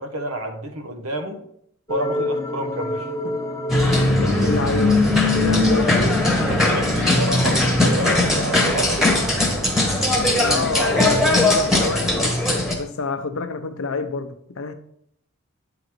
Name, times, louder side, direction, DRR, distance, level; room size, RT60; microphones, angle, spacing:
voice 1, 0.0-1.4 1.9-3.4 6.5-9.3, right 1 dB, 75° right, 1.0 m, -29 dB
sound 1, 1.9-6.9, equal, 15° left, 0.7 m, -29 dB
sound 2, 3.7-12.7, left 2 dB, ahead, 1.2 m, -19 dB
voice 2, 4.2-6.0 10.3-12.2 12.7-14.7, left 4 dB, 65° left, 0.7 m, -28 dB
9.1 x 3.9 x 4.5 m
head